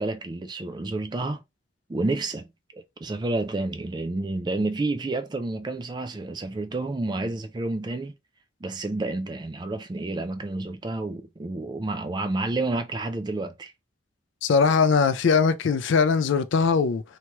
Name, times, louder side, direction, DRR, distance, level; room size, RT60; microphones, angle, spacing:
voice 1, 0.0-1.4 1.9-2.5 2.7-8.1 8.6-13.7, right 2 dB, 20° right, 0.3 m, -30 dB
voice 2, 14.4-17.0, left 5 dB, 75° left, 0.4 m, -21 dB
2.8 x 2.3 x 3.0 m
head